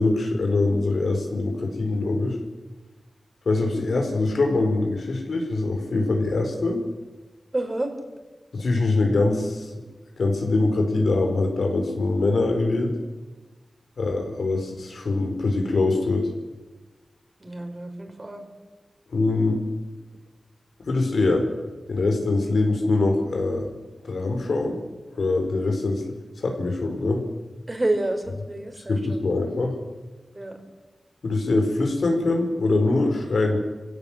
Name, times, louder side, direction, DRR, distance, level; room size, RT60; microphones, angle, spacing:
voice 1, 0.0-2.4 3.4-6.8 8.5-9.8 10.2-13.0 14.0-16.3 19.1-19.6 20.9-21.5 21.9-23.7 24.0-24.8 25.1-26.0 26.4-27.2 28.9-29.8 31.2-33.6, left 2 dB, 80° left, 3 dB, 4.6 m, -23 dB
voice 2, 7.5-7.9 17.4-18.4 27.7-29.3 30.3-30.5, right 2 dB, 25° right, 5 dB, 4.2 m, -29 dB
27.5 x 17.0 x 7.4 m, 1.2 s
wide cardioid pair, 85°, 0 cm